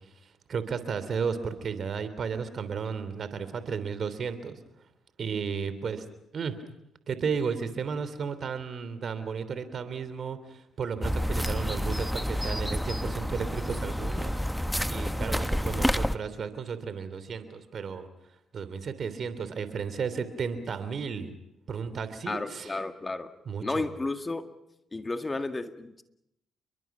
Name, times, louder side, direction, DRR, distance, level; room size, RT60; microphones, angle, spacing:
voice 1, 0.5-4.6 5.2-6.0 6.3-6.5 7.1-14.4 14.9-18.1 18.5-21.3 21.7-22.7 23.5-23.8, right 6 dB, 55° right, 12 dB, 3.0 m, -33 dB
sound 1, 11.0-16.1, equal, 5° left, 1.1 m, -29 dB
voice 2, 22.3-23.3 23.6-24.5 24.9-26.0, left 2 dB, 25° left, 8 dB, 2.0 m, -32 dB
29.5 x 22.5 x 6.0 m, 0.82 s
hypercardioid pair, 50°, 0 cm